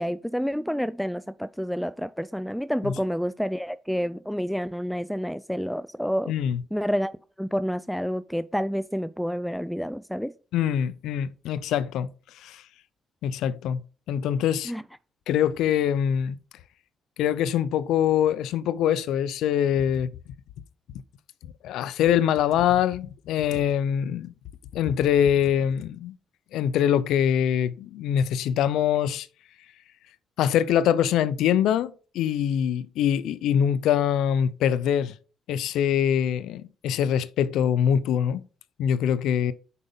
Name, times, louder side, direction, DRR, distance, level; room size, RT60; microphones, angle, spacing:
voice 1, 0.0-6.3 6.7-7.1 7.4-10.3 14.6-14.8, equal, ahead, 0.4 m, -29 dB
voice 2, 6.3-6.6 10.5-12.1 12.3-12.6 13.2-13.8 14.1-14.7 15.3-16.4 17.2-20.1 21.6-24.3 24.7-26.1 26.5-29.3 30.4-35.1 35.5-38.4 38.8-39.5, left 9 dB, 85° left, 0.5 m, -24 dB
8.1 x 5.1 x 5.3 m
cardioid pair, 90°, 0 cm